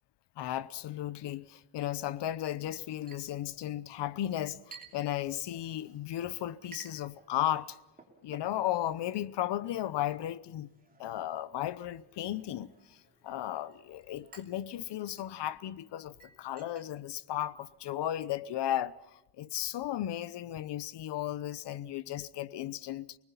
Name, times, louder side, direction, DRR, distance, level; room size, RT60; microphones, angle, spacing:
voice 1, 0.4-7.8 8.2-10.7 11.0-13.0 13.2-18.9 19.4-23.2, left 12 dB, 90° left, 0.9 m, -35 dB
Chink clink, 3.1-18.1, right 5 dB, 20° right, 3.0 m, -59 dB
28.5 x 20.0 x 5.6 m
cardioid pair, 125°, 40 cm